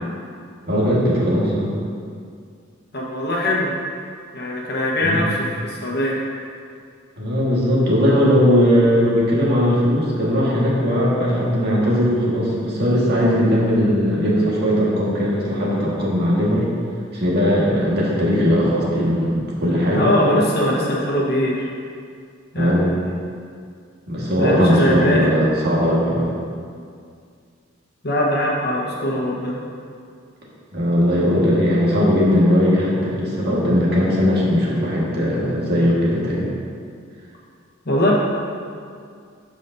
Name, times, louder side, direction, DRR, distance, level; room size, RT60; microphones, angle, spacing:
voice 1, 0.7-1.7 5.0-5.2 7.2-16.7 17.1-20.1 22.6-23.0 24.1-26.4 30.7-36.5, equal, 55° right, -6 dB, 1.8 m, -18 dB
voice 2, 2.9-3.7 4.3-6.2 19.9-21.7 22.5-23.0 24.4-25.3 28.0-29.6 37.8-38.1, left 1 dB, 55° left, -3 dB, 1.3 m, -21 dB
12.5 x 5.1 x 2.7 m, 2.2 s
head